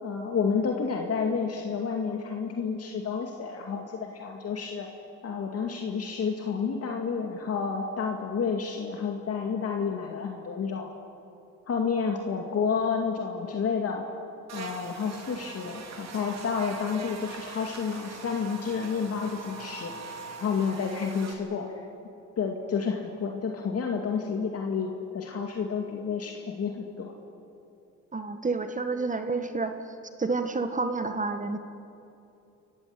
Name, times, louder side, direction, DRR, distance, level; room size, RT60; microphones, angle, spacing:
voice 1, 0.0-4.9 5.2-10.9 11.7-14.0 14.5-19.9 20.4-21.8 22.4-27.1, left 5 dB, 55° left, 2 dB, 2.2 m, -30 dB
Buzz, 14.5-21.3, right 4 dB, 60° right, 3.5 m, -42 dB
voice 2, 28.1-31.6, right 3 dB, 25° right, 8 dB, 1.5 m, -30 dB
28.0 x 15.5 x 9.8 m, 2.8 s
cardioid pair, 90°, 30 cm